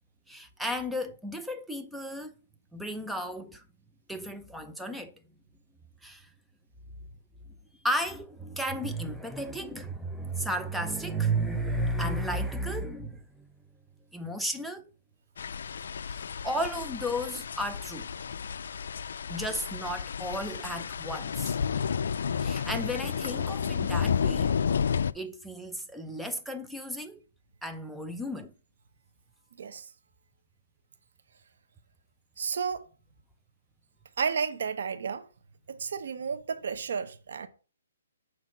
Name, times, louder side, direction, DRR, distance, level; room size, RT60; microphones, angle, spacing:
voice 1, 0.3-2.3 2.7-3.6 4.1-5.1 6.0-6.3 7.8-13.5 14.1-14.9 16.1-18.1 19.3-21.5 22.4-24.6 25.1-27.2 27.6-28.5, right 1 dB, ahead, 0.5 m, -33 dB
sound 1, 15.4-25.1, left 7 dB, 65° left, 0.4 m, -31 dB
voice 2, 29.6-29.9 32.4-32.9 34.2-35.3 35.7-37.5, right 6 dB, 60° right, 0.8 m, -32 dB
6.0 x 4.4 x 6.0 m
hypercardioid pair, 160°, 0 cm